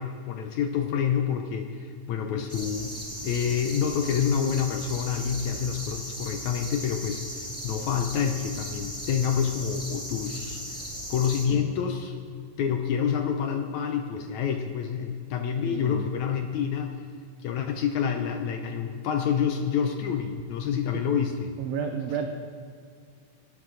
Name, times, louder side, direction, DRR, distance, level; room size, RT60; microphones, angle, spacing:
voice 1, 0.0-2.9 3.2-10.8 11.1-12.2 12.6-17.0 17.4-21.5, left 7 dB, 75° left, 5 dB, 1.8 m, -28 dB
sound 1, 2.5-11.5, equal, ahead, 1.2 m, -37 dB
voice 2, 11.5-11.8 15.6-16.1 20.9-21.0 21.6-22.3, right 7 dB, 80° right, 5 dB, 1.5 m, -32 dB
18.5 x 8.6 x 6.2 m, 2.1 s
omnidirectional pair, 4.0 m